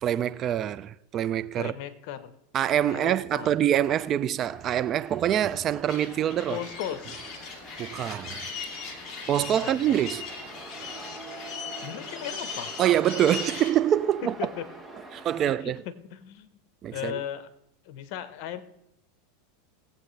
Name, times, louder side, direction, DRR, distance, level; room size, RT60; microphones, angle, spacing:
voice 1, 0.0-1.7 2.5-6.6 7.8-8.4 9.3-10.3 12.8-14.3 15.1-15.8 16.8-17.2, right 11 dB, 35° right, 0.3 m, -25 dB
voice 2, 1.5-2.3 2.9-3.5 6.5-7.2 9.3-10.0 11.8-12.7 14.2-14.7 15.5-16.5 16.9-17.5 17.8-18.6, left 10 dB, 55° left, 1.0 m, -37 dB
sound 1, 4.4-15.4, right 2 dB, 10° right, 1.1 m, -46 dB
sound 2, 5.9-13.7, left 5 dB, 25° left, 2.5 m, -39 dB
18.0 x 8.2 x 3.3 m
supercardioid pair, 125°, 0 cm